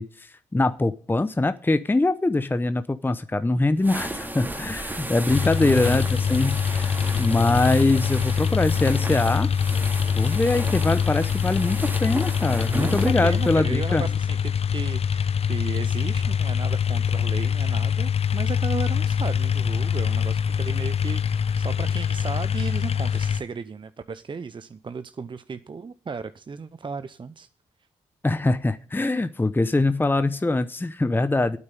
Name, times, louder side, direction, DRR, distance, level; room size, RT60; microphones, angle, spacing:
voice 1, 0.0-6.0 6.3-9.5 10.1-14.0 28.2-31.6, left 2 dB, 15° left, 12 dB, 0.8 m, -23 dB
sound 1, 3.8-13.6, right 1 dB, 15° right, 2.3 m, -34 dB
sound 2, 5.3-23.4, left 7 dB, 50° left, 0.8 m, -24 dB
voice 2, 5.6-6.1 12.7-27.5, right 5 dB, 40° right, 12 dB, 0.7 m, -35 dB
8.7 x 8.2 x 9.2 m, 0.41 s
supercardioid pair, 55°, 13 cm